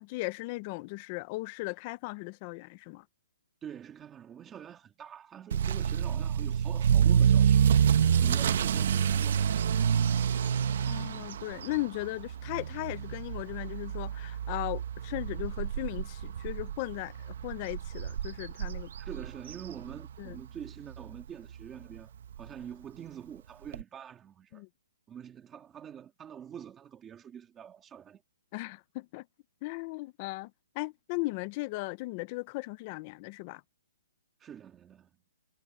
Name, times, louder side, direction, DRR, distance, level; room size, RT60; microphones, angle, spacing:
voice 1, 0.0-3.0 10.9-18.9 20.2-20.4 24.5-24.7 28.5-29.2 29.6-30.5 30.8-33.6, left 22 dB, 20° left, 0.5 m, -37 dB
voice 2, 3.6-7.7 8.2-9.7 19.0-22.1 22.4-24.6 25.1-28.2 34.4-35.1, right 9 dB, 10° right, 2.1 m, -46 dB
Motor vehicle (road) / Accelerating revving vroom, 5.5-20.4 20.7-21.0 21.6-21.7 22.0-22.1 22.3-22.4 23.7-23.8, right 8 dB, 45° right, 1.0 m, -28 dB
hypercardioid pair, 175°, 0 cm